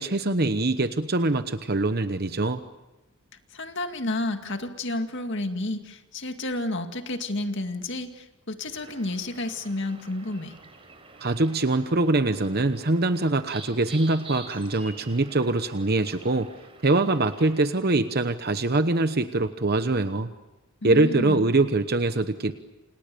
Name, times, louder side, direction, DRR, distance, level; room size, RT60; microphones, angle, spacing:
voice 1, 0.0-2.6 11.2-16.5 16.8-20.3 20.8-22.5, right 2 dB, 45° right, 10 dB, 1.0 m, -23 dB
voice 2, 3.5-10.5 20.8-21.5, left 2 dB, 55° left, 6 dB, 2.1 m, -31 dB
sound 1, 8.7-17.7, right 3 dB, 25° right, 4.5 m, -48 dB
29.5 x 27.5 x 6.9 m, 1.1 s
head